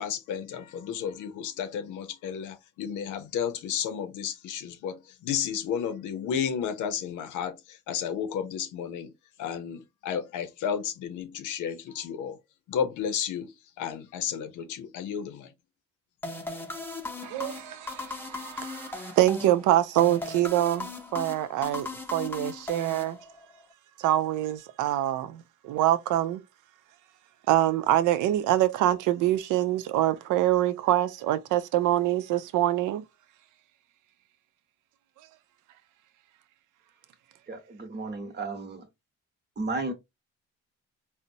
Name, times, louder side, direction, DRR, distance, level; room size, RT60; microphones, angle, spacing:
voice 1, 0.0-9.1 9.4-12.4 12.7-15.5, left 8 dB, 85° left, 0.6 m, -32 dB
sound 1, 16.2-23.6, left 3 dB, 5° left, 0.7 m, -38 dB
voice 2, 17.2-23.2 24.0-26.4 27.5-33.0, right 13 dB, 85° right, 0.5 m, -25 dB
voice 3, 37.5-38.9 39.6-39.9, right 3 dB, 35° right, 1.0 m, -33 dB
3.9 x 2.1 x 2.6 m
cardioid pair, 90°, 30 cm